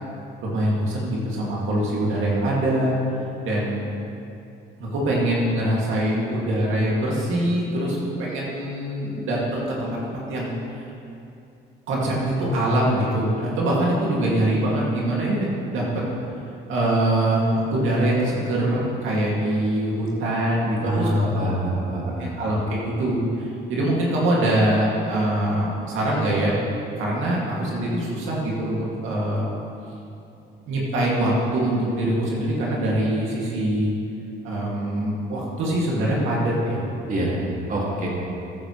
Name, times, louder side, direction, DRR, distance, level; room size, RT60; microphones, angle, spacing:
voice 1, 0.4-3.0 3.4-3.8 4.8-10.0 10.3-10.5 11.9-16.0 16.7-21.7 22.2-26.5 27.0-29.5 30.7-33.9 34.4-36.9, right 1 dB, 85° right, -5 dB, 2.3 m, -23 dB
voice 2, 20.8-22.4 37.1-37.4 37.7-38.1, equal, 40° right, -4 dB, 2.2 m, -25 dB
14.5 x 9.9 x 3.1 m, 2.7 s
cardioid pair, 90°, 20 cm